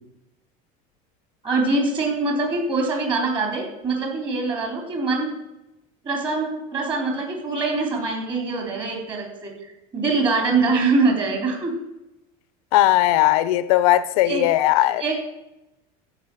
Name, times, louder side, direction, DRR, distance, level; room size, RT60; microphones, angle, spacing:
voice 1, 1.4-5.3 6.0-9.5 9.9-11.7 14.2-14.4 15.0-15.2, right 3 dB, 25° right, 3.9 m, -23 dB
voice 2, 12.7-15.0, left 14 dB, 85° left, 0.8 m, -18 dB
14.5 x 5.7 x 9.1 m
cardioid pair, 160°, 18 cm